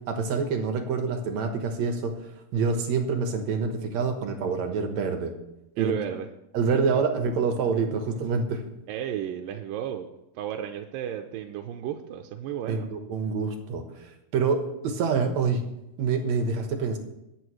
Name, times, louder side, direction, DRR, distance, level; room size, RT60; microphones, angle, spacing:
voice 1, 0.1-2.1 2.5-5.3 5.8-5.9 6.5-8.6 12.7-15.6 16.0-17.0, right 5 dB, 60° right, 5 dB, 2.3 m, -26 dB
voice 2, 5.8-6.3 6.7-7.0 8.9-10.1 10.4-12.9, right 10 dB, 90° right, 4 dB, 2.4 m, -33 dB
21.5 x 8.8 x 3.2 m, 0.87 s
omnidirectional pair, 3.9 m